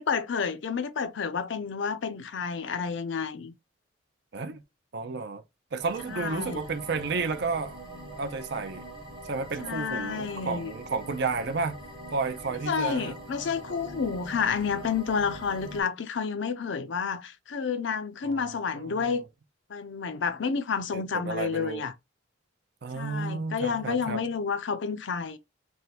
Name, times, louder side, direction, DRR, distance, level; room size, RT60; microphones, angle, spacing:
voice 1, 0.0-3.5 6.1-6.6 9.6-10.7 12.7-19.2 19.7-21.9 22.9-25.4, left 6 dB, 65° left, 0.5 m, -30 dB
voice 2, 4.9-5.4 5.7-7.8 8.2-8.9 9.2-11.8 12.1-13.2 18.2-18.5 18.8-19.2 20.9-21.9 22.8-24.2, right 4 dB, 55° right, 0.5 m, -32 dB
sound 1, 5.8-15.8, right 1 dB, 25° right, 0.8 m, -43 dB
3.4 x 2.2 x 2.8 m
head